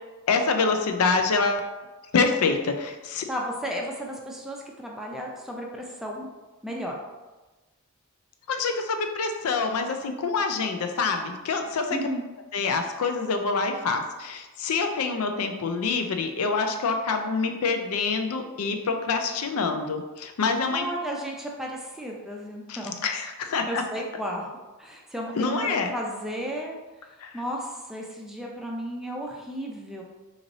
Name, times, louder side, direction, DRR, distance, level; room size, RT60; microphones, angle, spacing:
voice 1, 0.3-1.6 2.1-3.2 8.5-12.0 12.5-20.8 22.7-23.8 25.4-26.0 27.2-27.3, left 4 dB, 80° left, 6 dB, 0.4 m, -26 dB
voice 2, 3.3-6.3 6.6-6.9 11.9-12.2 20.7-22.9 23.7-26.8 27.3-30.0, equal, ahead, -1 dB, 0.5 m, -34 dB
3.1 x 2.6 x 3.9 m, 1.2 s
head